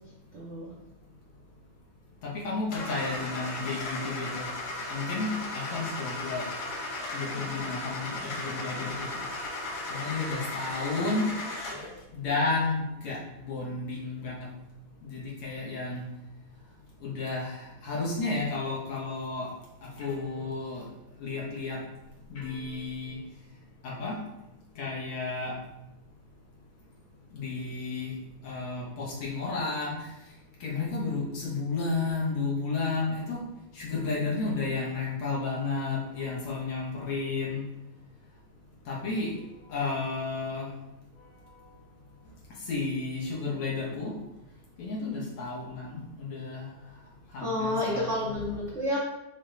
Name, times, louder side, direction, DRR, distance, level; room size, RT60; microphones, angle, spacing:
voice 1, 0.3-0.7 47.4-49.0, left 1 dB, 75° right, -6 dB, 0.6 m, -30 dB
voice 2, 2.2-4.5 4.9-6.4 7.1-9.2 9.9-11.3 12.1-14.5 15.0-16.0 17.0-19.5 20.0-20.9 21.2-21.8 22.3-23.2 23.8-24.2 24.8-25.5 27.3-28.1 28.4-30.1 30.6-33.4 33.7-37.6 38.9-39.3 39.7-40.7 42.7-44.1 44.8-46.7 47.3-48.4, left 3 dB, 80° left, -4 dB, 1.8 m, -32 dB
Car / Engine starting, 2.7-12.0, left 2 dB, 60° left, 1.3 m, -36 dB
6.3 x 2.2 x 3.7 m, 0.94 s
omnidirectional pair, 2.4 m